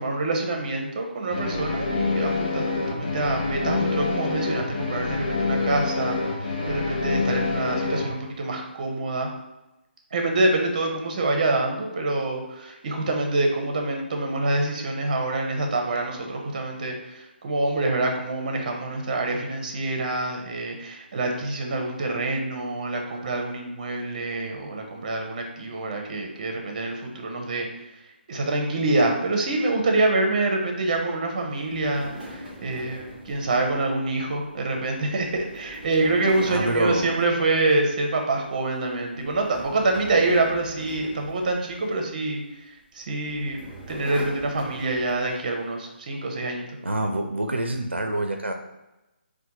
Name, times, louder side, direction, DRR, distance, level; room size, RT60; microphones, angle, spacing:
voice 1, 0.0-9.3 10.1-27.7 28.3-42.4 42.9-43.6 43.9-46.8, right 2 dB, 40° right, 2 dB, 0.6 m, -26 dB
sound 1, 1.3-8.0, left 3 dB, 45° left, 0.9 m, -26 dB
sound 2, 31.5-38.1 38.5-38.7 39.2-42.2 43.0-45.4, equal, ahead, 0.7 m, -42 dB
voice 2, 36.5-37.2 46.8-48.5, right 1 dB, 90° right, 4 dB, 0.4 m, -26 dB
4.2 x 2.1 x 2.8 m, 0.99 s
figure-of-eight pair, 145°, 6 cm